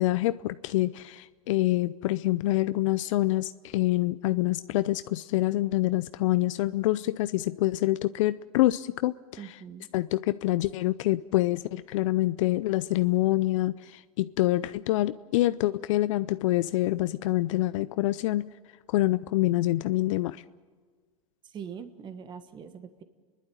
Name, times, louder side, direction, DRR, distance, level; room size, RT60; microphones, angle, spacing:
voice 1, 0.0-9.4 9.9-18.5 18.9-20.4, left 16 dB, 60° left, 14 dB, 0.5 m, -26 dB
voice 2, 9.4-9.9 21.5-23.0, right 7 dB, 25° right, 10 dB, 1.4 m, -42 dB
30.0 x 11.5 x 9.3 m, 1.5 s
hypercardioid pair, 120°, 18 cm